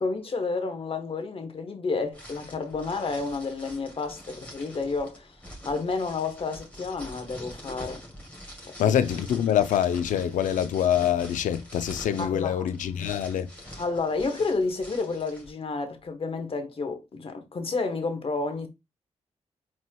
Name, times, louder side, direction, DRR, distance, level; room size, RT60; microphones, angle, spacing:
voice 1, 0.0-5.3 5.6-8.0 8.6-9.0 12.2-12.7 13.8-18.7, left 4 dB, 45° left, 1.1 m, -30 dB
sound 1, 2.1-15.5, equal, 10° left, 2.5 m, -45 dB
voice 2, 8.8-13.5, left 9 dB, 90° left, 0.4 m, -25 dB
4.4 x 4.2 x 2.2 m
cardioid pair, 65°, 13 cm